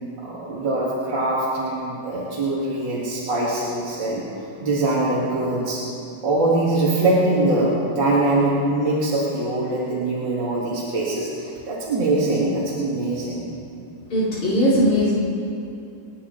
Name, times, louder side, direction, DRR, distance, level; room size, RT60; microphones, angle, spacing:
voice 1, 0.2-4.3 4.6-5.9 6.2-13.5, right 2 dB, 40° right, -7 dB, 2.7 m, -22 dB
voice 2, 14.1-15.1, equal, 40° left, -11 dB, 5.9 m, -19 dB
30.0 x 10.5 x 4.2 m, 2.6 s
omnidirectional pair, 3.7 m